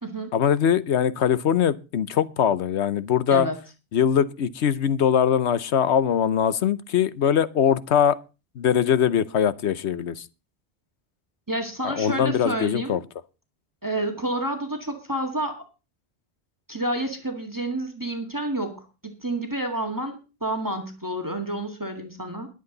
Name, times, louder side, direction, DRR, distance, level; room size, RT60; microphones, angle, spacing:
voice 1, 0.3-3.5 3.9-8.2 8.6-10.2 11.8-13.0, left 8 dB, 90° left, 1.1 m, -22 dB
voice 2, 11.5-13.0 13.8-15.6 16.7-18.8 19.2-22.5, right 1 dB, 20° right, 2.0 m, -29 dB
21.0 x 8.0 x 3.9 m
omnidirectional pair, 1.1 m